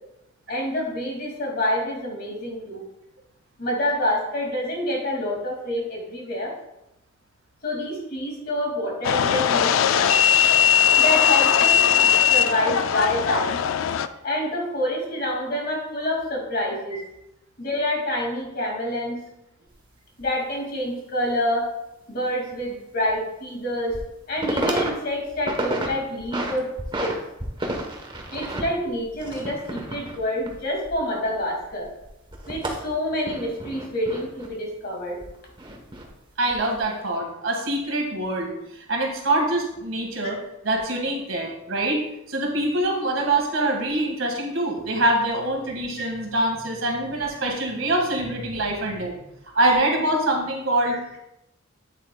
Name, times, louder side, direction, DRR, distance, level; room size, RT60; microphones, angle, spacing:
voice 1, 0.5-2.8 3.6-6.5 7.6-10.2 11.0-13.6 14.2-17.0 17.6-19.2 20.2-21.7 22.1-24.0 24.3-26.7 27.0-27.2 28.3-31.9 32.5-35.2 46.0-46.1 50.9-51.0, left 1 dB, 45° left, -1 dB, 2.3 m, -27 dB
sound 1, 9.0-14.1, left 8 dB, 70° left, 0.4 m, -19 dB
sound 2, 19.7-19.8 20.2-20.3 22.5-22.6 23.1-23.2 23.7-24.1 24.4-24.9 25.2-25.9 26.2-27.1 27.4-31.4 31.6-34.5 35.2-36.1 36.5-36.8, right 1 dB, 25° right, 1.1 m, -31 dB
voice 2, 36.4-40.4 40.6-49.2 49.6-51.0, right 1 dB, 70° right, 1 dB, 1.8 m, -24 dB
9.0 x 8.0 x 2.3 m, 0.89 s
head